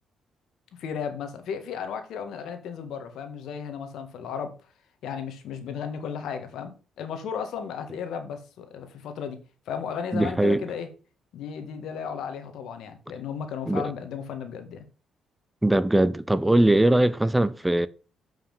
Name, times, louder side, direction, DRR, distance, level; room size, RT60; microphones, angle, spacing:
voice 1, 0.8-4.5 5.0-9.4 9.7-10.9 11.3-14.8, left 7 dB, 80° left, 1.7 m, -34 dB
voice 2, 10.1-10.6 13.7-13.9 15.6-17.9, right 1 dB, 10° right, 0.5 m, -21 dB
7.5 x 5.8 x 5.5 m
cardioid pair, 90°, 0 cm